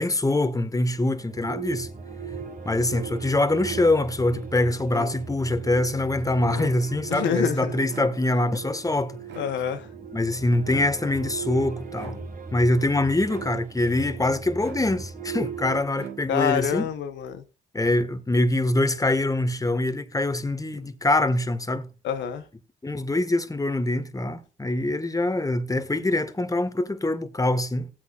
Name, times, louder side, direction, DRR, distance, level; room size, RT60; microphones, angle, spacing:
voice 1, 0.0-1.9 2.6-9.2 10.1-12.2 12.5-16.9 17.7-21.9 22.8-27.9, left 2 dB, 20° left, 1.6 m, -24 dB
sound 1, 1.1-15.8, right 5 dB, 45° right, 3.5 m, -37 dB
sound 2, 3.6-4.2 4.8-5.5 6.4-7.1 7.9-8.6 9.3-9.9 10.6-11.2 11.9-12.5 13.3-13.9 14.6-15.3 15.9-16.6, right 8 dB, 75° right, 1.6 m, -43 dB
voice 2, 7.1-7.7 9.4-9.9 16.3-17.4 22.0-22.4, left 8 dB, 75° left, 1.0 m, -27 dB
17.5 x 8.4 x 2.4 m
hypercardioid pair, 45°, 19 cm